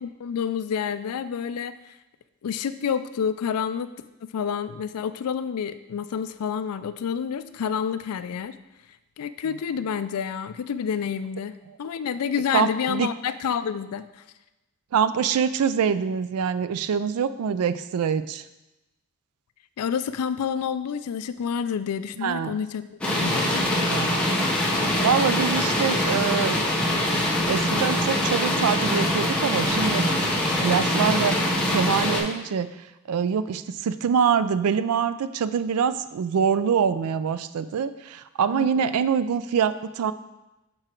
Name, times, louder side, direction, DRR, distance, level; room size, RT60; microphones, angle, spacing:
voice 1, 0.0-1.9 2.4-3.9 4.2-8.5 9.2-14.2 19.8-22.9 23.2-23.6 38.5-38.9, left 7 dB, 85° left, 12 dB, 0.4 m, -29 dB
voice 2, 12.5-13.1 14.9-18.4 22.2-22.5 23.9-24.3 24.7-26.6 27.5-30.1 30.6-31.4 31.7-32.7 33.1-40.1, right 7 dB, 80° right, 13 dB, 0.4 m, -24 dB
sound 1, 23.0-32.2, left 1 dB, 5° left, 0.9 m, -23 dB
6.0 x 4.8 x 4.5 m, 0.99 s
head